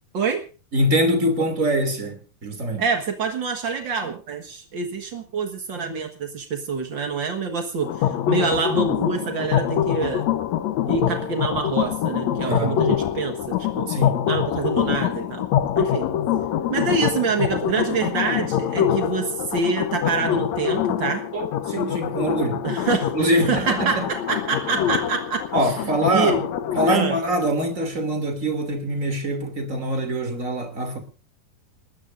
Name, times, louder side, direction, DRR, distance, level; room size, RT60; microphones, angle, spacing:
voice 1, 0.7-2.8 12.4-12.8 13.9-14.2 21.3-22.6 23.1-24.0 25.5-26.4 26.7-31.0, right 1 dB, 25° right, 2.6 m, -23 dB
voice 2, 2.8-10.2 10.9-13.3 13.7-13.9 14.2-15.4 15.7-16.1 16.7-21.2 22.6-23.1 23.4-25.7 26.1-26.4 26.9-27.2, right 5 dB, 60° right, 1.1 m, -26 dB
sound 1, 7.8-27.0, left 10 dB, 85° left, 1.5 m, -25 dB
28.5 x 13.5 x 2.6 m
omnidirectional pair, 4.5 m